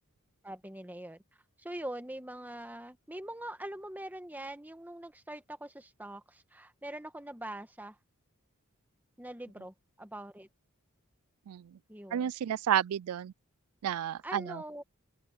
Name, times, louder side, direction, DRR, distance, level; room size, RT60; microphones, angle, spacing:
voice 1, 0.4-1.2 1.6-8.0 9.2-10.5 11.9-12.3 14.2-14.8, right 1 dB, 10° right, 1.4 m, -43 dB
voice 2, 11.5-11.8 12.1-13.3 13.8-14.6, right 10 dB, 80° right, 0.3 m, -31 dB
open air
head